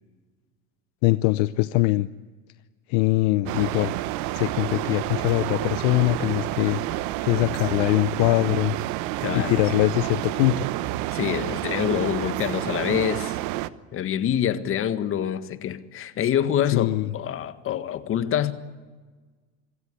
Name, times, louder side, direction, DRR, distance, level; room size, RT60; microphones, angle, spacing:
voice 1, 1.0-2.1 2.9-4.0 4.3-6.8 7.2-8.8 9.3-10.7 16.7-17.1, left 19 dB, 65° left, 0.8 m, -22 dB
sound 1, 3.5-13.7, right 16 dB, 60° right, 1.0 m, -29 dB
voice 2, 9.2-9.5 11.1-13.4 13.9-18.5, left 10 dB, 40° left, 1.7 m, -26 dB
26.0 x 16.5 x 9.9 m
supercardioid pair, 115°, 33 cm